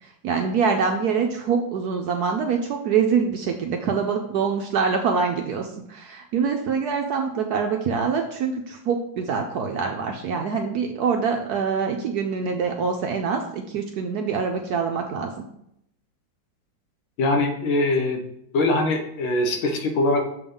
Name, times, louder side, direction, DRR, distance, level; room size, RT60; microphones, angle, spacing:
voice 1, 0.0-15.3, right 5 dB, 70° right, 3 dB, 0.9 m, -25 dB
voice 2, 17.2-18.2 18.5-20.3, left 2 dB, 80° left, 4 dB, 1.8 m, -22 dB
6.8 x 3.6 x 5.4 m, 0.76 s
omnidirectional pair, 2.1 m